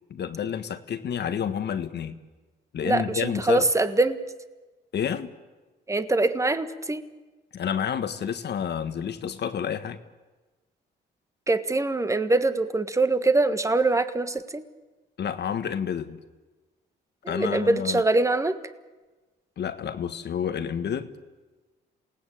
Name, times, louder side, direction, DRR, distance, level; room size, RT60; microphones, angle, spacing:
voice 1, 0.1-2.2 2.7-3.7 4.9-5.3 7.5-10.0 15.2-16.2 17.3-18.0 19.6-21.1, left 8 dB, 60° left, 10 dB, 1.6 m, -29 dB
voice 2, 2.8-4.2 5.9-7.0 11.5-14.6 17.2-18.6, right 2 dB, 15° right, 11 dB, 1.6 m, -23 dB
28.0 x 18.0 x 8.5 m, 1.2 s
cardioid pair, 90°, 20 cm